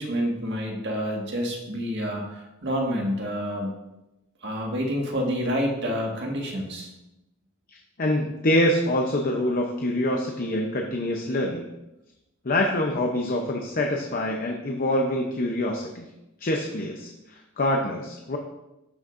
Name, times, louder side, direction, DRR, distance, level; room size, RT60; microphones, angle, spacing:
voice 1, 0.0-3.7 4.4-6.9, equal, 55° right, 0 dB, 1.7 m, -28 dB
voice 2, 7.7-11.7 12.4-16.0 16.4-18.4, left 1 dB, 40° left, 2 dB, 0.7 m, -25 dB
12.5 x 6.4 x 2.6 m, 0.94 s
head